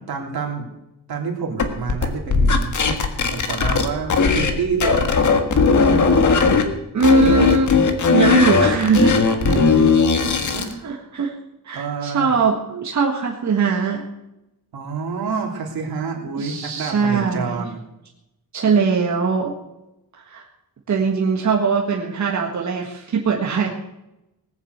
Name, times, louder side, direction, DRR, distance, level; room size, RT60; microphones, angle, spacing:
voice 1, 0.1-0.7 1.1-2.8 3.3-5.1 9.4-9.9 10.5-11.1 11.7-12.3 14.7-17.8, right 5 dB, 80° right, 1 dB, 3.2 m, -28 dB
sound 1, 1.6-4.5 4.8-6.6 7.0-10.7, left 4 dB, 55° left, 1.6 m, -17 dB
voice 2, 6.9-7.7 8.1-9.7 10.2-10.3 10.8-11.3 11.6-14.0 16.3-17.6 18.5-19.5 20.2-20.5 20.9-23.7, right 5 dB, 50° right, 0 dB, 1.7 m, -21 dB
19.0 x 7.3 x 8.0 m, 0.91 s
wide cardioid pair, 175°, 36 cm